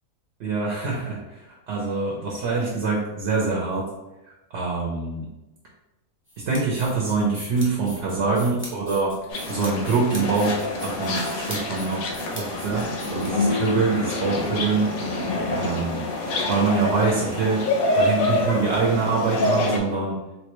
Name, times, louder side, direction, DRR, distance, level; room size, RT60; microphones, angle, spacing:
voice 1, 0.4-3.9 4.5-5.3 6.4-9.1 9.5-12.1 12.3-15.0 15.5-16.0 16.5-17.6 17.9-20.2, right 4 dB, 60° right, -3 dB, 0.9 m, -24 dB
sound 1, 6.3-13.7, equal, 10° left, 0.6 m, -41 dB
sound 2, 9.3-19.8, left 2 dB, 80° left, 1.0 m, -26 dB
3.9 x 2.2 x 3.0 m, 0.99 s
omnidirectional pair, 1.5 m